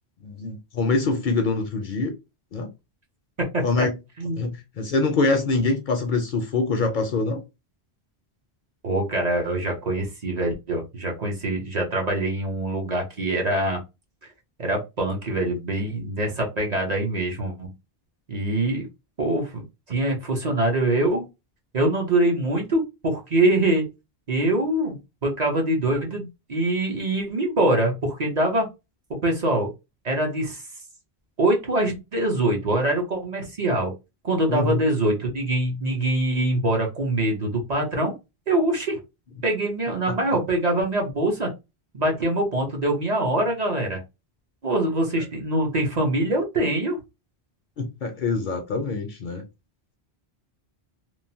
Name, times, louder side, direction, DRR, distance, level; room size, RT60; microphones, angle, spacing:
voice 1, 0.2-2.1 2.5-2.7 3.6-3.9 4.3-7.4 34.5-34.8 47.8-49.4, left 3 dB, 60° left, 0.6 m, -24 dB
voice 2, 3.5-3.9 4.2-4.4 8.8-13.8 14.6-17.7 18.3-18.9 19.2-19.6 19.9-21.2 21.7-23.9 24.3-28.7 29.1-29.7 30.0-30.6 31.4-33.9 34.2-38.1 38.5-39.0 39.4-41.5 41.9-44.0 44.6-47.0, right 1 dB, 45° right, 0.8 m, -24 dB
3.0 x 2.0 x 2.7 m
omnidirectional pair, 1.1 m